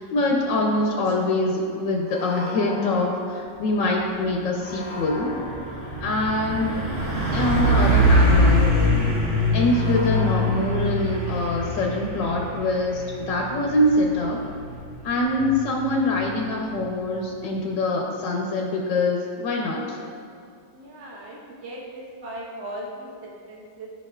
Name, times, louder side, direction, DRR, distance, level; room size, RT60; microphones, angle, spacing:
voice 1, 0.0-5.3 6.0-6.8 7.3-9.0 9.5-14.4 15.0-20.0, left 2 dB, 90° left, -1 dB, 1.6 m, -24 dB
sound 1, 2.0-3.9 4.6-6.4 7.1-9.0 9.6-11.5, left 1 dB, 5° left, 1.3 m, -38 dB
Truck, 4.1-4.2 4.5-17.1, equal, 35° right, 1.8 m, -24 dB
voice 2, 20.7-23.9, right 1 dB, 75° right, -4 dB, 1.9 m, -38 dB
14.0 x 5.7 x 2.4 m, 2.4 s
omnidirectional pair, 1.9 m